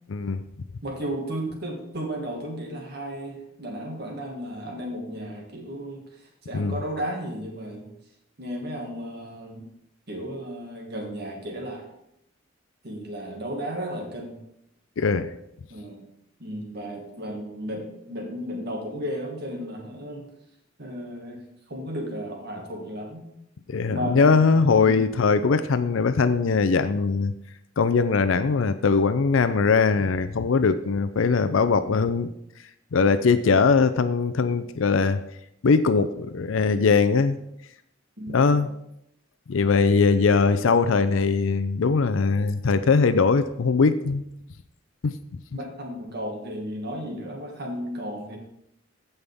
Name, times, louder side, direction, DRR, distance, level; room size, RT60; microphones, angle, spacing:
voice 1, 0.1-0.4 6.5-6.8 15.0-15.3 23.7-27.3 27.8-32.3 32.9-35.2 35.6-37.4 38.3-38.7 39.5-44.2 45.0-45.2, left 4 dB, 75° left, 12 dB, 0.5 m, -21 dB
voice 2, 0.8-7.9 8.4-9.6 10.1-11.9 12.8-14.4 15.7-16.0 16.4-20.3 20.8-21.4 21.7-23.3 23.9-25.0 38.2-38.4 45.5-48.4, equal, 55° right, 1 dB, 1.9 m, -34 dB
15.0 x 5.5 x 3.5 m, 0.80 s
head